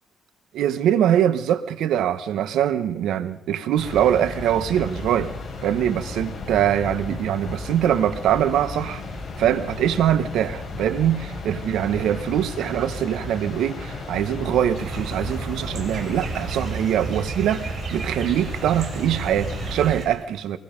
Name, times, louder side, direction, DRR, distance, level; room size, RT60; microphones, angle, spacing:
voice 1, 0.5-5.3 5.6-9.0 9.4-20.6, right 10 dB, 80° right, 13 dB, 1.1 m, -23 dB
sound 1, 3.8-19.9, left 3 dB, 40° left, 6.3 m, -34 dB
sound 2, 14.7-20.1, right 5 dB, 55° right, 4.3 m, -32 dB
23.5 x 21.0 x 5.2 m, 0.80 s
cardioid pair, 90°, 0 cm